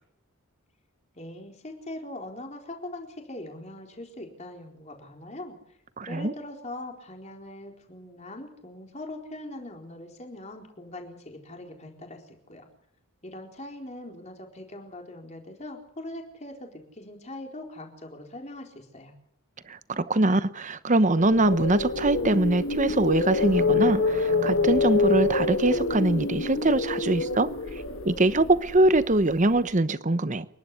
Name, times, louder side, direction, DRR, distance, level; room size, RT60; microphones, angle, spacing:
voice 1, 1.2-5.8 6.1-12.7 13.2-19.1, left 1 dB, 30° left, 4.2 m, -41 dB
voice 2, 6.0-6.3 19.7-27.5 28.0-30.5, right 2 dB, 35° right, 0.9 m, -23 dB
sound 1, 21.2-29.2, left 3 dB, 60° left, 2.0 m, -26 dB
29.0 x 12.0 x 8.4 m
head